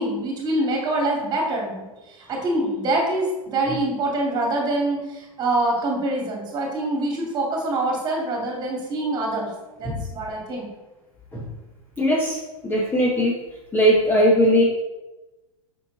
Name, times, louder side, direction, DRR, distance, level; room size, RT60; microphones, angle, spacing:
voice 1, 0.0-1.9 2.3-9.5 9.8-10.7, right 2 dB, 25° right, 0 dB, 2.5 m, -25 dB
voice 2, 12.0-12.4 12.6-13.4 13.7-14.6, equal, 10° left, -3 dB, 1.0 m, -19 dB
8.0 x 5.7 x 4.0 m, 1.1 s
figure-of-eight pair, 95°, 19 cm